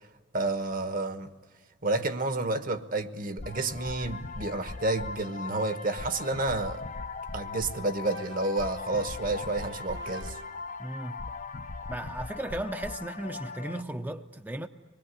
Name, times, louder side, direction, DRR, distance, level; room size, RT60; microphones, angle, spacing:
voice 1, 0.3-1.3 1.8-6.8 7.3-10.4, right 2 dB, 50° right, 1.3 m, -30 dB
sound 1, 3.4-13.8, left 4 dB, 45° left, 0.7 m, -39 dB
sound 2, 7.4-10.8, right 2 dB, 85° right, 1.1 m, -48 dB
voice 2, 10.8-11.2 11.9-14.7, right 1 dB, 10° right, 0.7 m, -35 dB
25.5 x 20.5 x 9.8 m
head